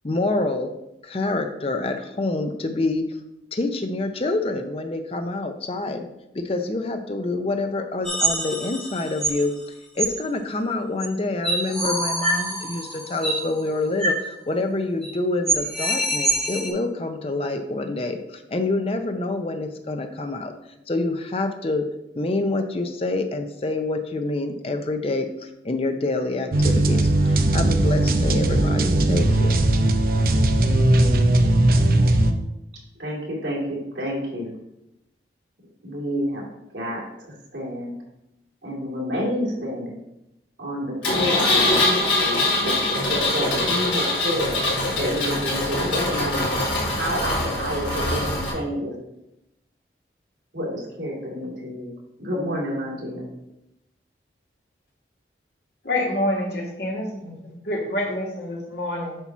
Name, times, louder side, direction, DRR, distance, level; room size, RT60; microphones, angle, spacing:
voice 1, 0.0-0.7 1.0-3.1 3.5-6.1 6.3-20.5 20.9-21.9 22.1-29.6, left 2 dB, 30° left, 6 dB, 0.5 m, -27 dB
sound 1, 8.0-9.4 10.0-10.1 11.0-11.1 11.4-13.4 14.0-14.2 14.5-14.6 15.0-15.1 15.5-16.7, right 2 dB, 5° left, 1.3 m, -25 dB
sound 2, 26.5-32.3, right 1 dB, 50° right, 0.6 m, -18 dB
voice 2, 33.0-34.5 35.8-36.5 36.7-37.0 37.5-38.0 38.6-40.0 40.6-44.5 45.0-46.6 46.8-48.9 50.5-51.9 52.2-53.3, equal, 80° right, -4 dB, 2.6 m, -29 dB
Engine, 41.0-48.5, left 1 dB, 85° left, 2.7 m, -23 dB
voice 3, 55.8-59.2, left 1 dB, 65° left, -2 dB, 1.9 m, -27 dB
8.0 x 2.9 x 6.0 m, 0.87 s
head